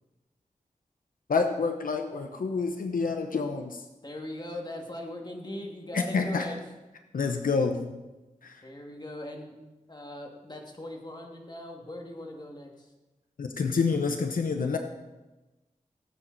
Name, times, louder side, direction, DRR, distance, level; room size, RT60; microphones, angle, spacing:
voice 1, 1.3-3.8 5.9-6.5 7.1-8.0 8.4-8.6 13.4-14.8, left 4 dB, 90° left, 5 dB, 0.9 m, -28 dB
voice 2, 4.0-6.6 8.4-9.6 9.9-12.9, left 1 dB, 30° left, 1 dB, 2.3 m, -40 dB
17.5 x 9.0 x 4.1 m, 1.1 s
wide cardioid pair, 70°, 14 cm